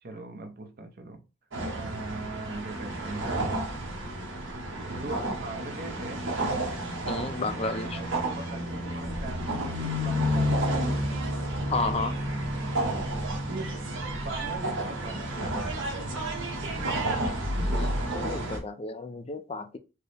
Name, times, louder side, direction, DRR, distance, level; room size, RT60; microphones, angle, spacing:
voice 1, 0.0-1.2 1.7-3.6 4.9-6.3 7.9-10.8 12.7-13.2 13.5-15.3, right 2 dB, 45° right, 0.6 m, -41 dB
sound 1, 1.5-18.6, right 1 dB, 65° right, 1.0 m, -30 dB
voice 2, 7.0-8.0 11.7-12.2 17.7-19.8, left 3 dB, 30° left, 0.4 m, -32 dB
4.5 x 2.0 x 3.3 m
head